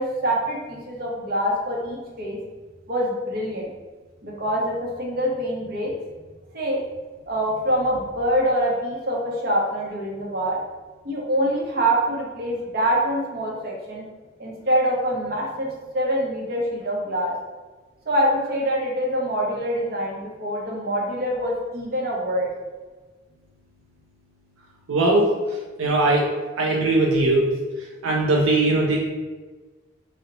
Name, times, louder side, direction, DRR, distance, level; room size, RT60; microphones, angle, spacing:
voice 1, 0.0-2.4 2.9-3.7 4.2-5.9 6.5-6.8 7.3-10.6 11.0-14.0 14.4-17.3 18.1-22.5, equal, 50° right, -2 dB, 0.7 m, -25 dB
voice 2, 24.9-25.3 25.8-26.3 26.6-27.5 28.0-29.1, right 2 dB, 85° right, -1 dB, 0.4 m, -19 dB
2.7 x 2.0 x 3.9 m, 1.3 s
head